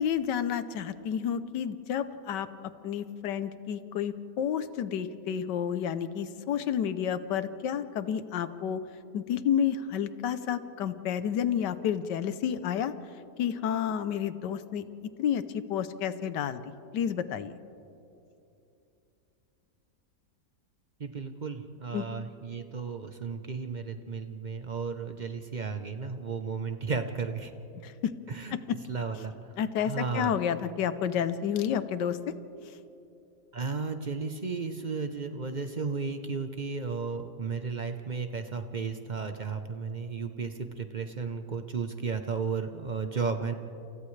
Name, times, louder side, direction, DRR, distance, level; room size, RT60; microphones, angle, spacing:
voice 1, 0.0-2.5 2.8-8.8 9.1-12.9 13.4-14.8 15.2-16.6 16.9-17.5 21.9-22.0 27.8-28.1 28.5-28.8 29.6-32.2, left 8 dB, 85° left, 12 dB, 1.4 m, -30 dB
voice 2, 21.0-27.5 28.3-28.6 28.9-29.3 29.8-30.4 33.5-43.5, right 5 dB, 45° right, 7 dB, 0.6 m, -34 dB
29.0 x 28.5 x 3.3 m, 2.8 s
omnidirectional pair, 1.8 m